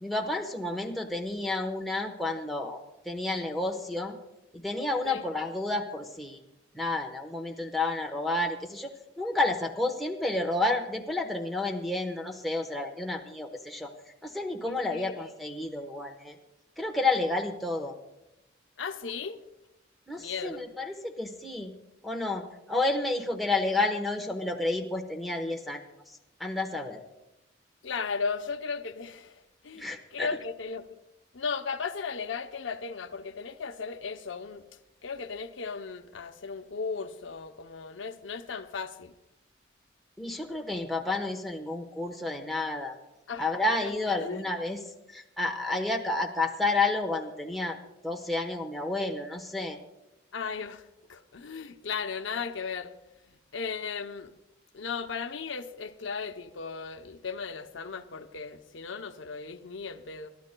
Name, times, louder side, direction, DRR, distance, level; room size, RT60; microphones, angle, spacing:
voice 1, 0.0-4.1 4.5-6.4 6.7-13.9 14.2-16.3 16.8-18.0 20.1-21.7 22.0-25.8 26.4-27.0 29.8-30.3 40.2-43.0 43.4-44.8 45.1-47.8 48.0-49.8, left 2 dB, ahead, 1.0 m, -30 dB
voice 2, 14.6-15.2 18.8-19.4 20.2-20.6 27.8-30.9 31.3-34.7 35.0-39.1 43.3-43.5 43.8-43.9 44.2-44.4 50.3-52.9 53.3-54.3 54.7-60.3, left 5 dB, 75° left, 0.7 m, -36 dB
28.5 x 12.0 x 2.2 m
head